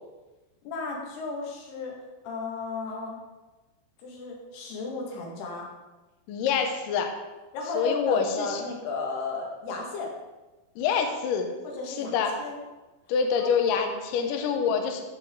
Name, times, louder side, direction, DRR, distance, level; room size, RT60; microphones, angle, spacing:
voice 1, 0.7-1.9 2.2-3.2 4.0-5.7 7.5-10.1 11.6-12.6 13.4-13.5 14.2-14.4, left 3 dB, 65° left, -1 dB, 3.4 m, -34 dB
voice 2, 6.3-7.1 7.7-8.6 10.8-11.5 11.9-12.3 13.1-15.0, left 6 dB, 85° left, 4 dB, 1.9 m, -26 dB
14.0 x 5.7 x 3.7 m, 1.1 s
omnidirectional pair, 5.2 m